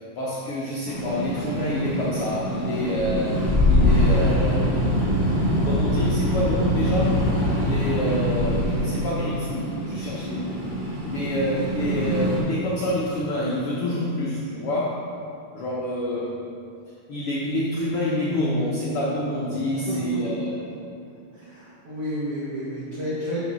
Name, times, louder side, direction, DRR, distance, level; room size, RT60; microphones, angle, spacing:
voice 1, 0.1-4.7 5.6-10.6 11.0-15.1 15.5-16.3 17.1-20.5, left 1 dB, 70° left, -7 dB, 1.3 m, -27 dB
sound 1, 0.9-12.4, left 1 dB, 15° right, 0.7 m, -24 dB
voice 2, 19.9-20.5 21.3-23.4, equal, 50° right, -11 dB, 2.1 m, -31 dB
7.2 x 5.7 x 6.1 m, 2.6 s
omnidirectional pair, 3.9 m